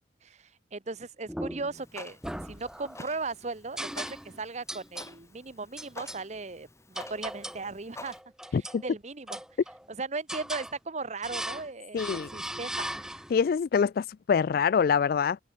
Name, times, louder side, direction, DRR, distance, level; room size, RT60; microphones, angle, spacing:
voice 1, 0.2-8.2 8.5-9.4 9.9-13.2, right 3 dB, 40° right, 1.0 m, -37 dB
sound 1, 1.3-1.8 2.2-3.1 3.8-4.4 4.7-5.1 5.8-6.2 6.9-7.7 8.1-8.8 9.3-9.9 10.3-10.7 11.2-11.7 12.0-13.4, right 1 dB, 5° right, 1.3 m, -38 dB
Clock, 1.7-8.2, left 2 dB, 15° left, 3.2 m, -49 dB
voice 2, 11.9-12.3 13.3-15.4, left 6 dB, 55° left, 0.3 m, -25 dB
head